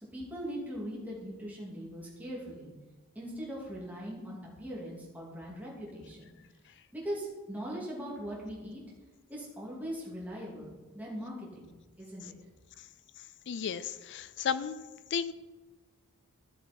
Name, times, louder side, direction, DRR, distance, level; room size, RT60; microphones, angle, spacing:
voice 1, 0.1-2.7 3.1-6.3 6.9-8.8 9.3-11.7 12.0-12.3, equal, 5° right, -5 dB, 2.7 m, -40 dB
voice 2, 13.5-14.7 15.1-15.3, left 7 dB, 55° left, 14 dB, 0.4 m, -33 dB
13.0 x 7.0 x 4.5 m, 1.2 s
head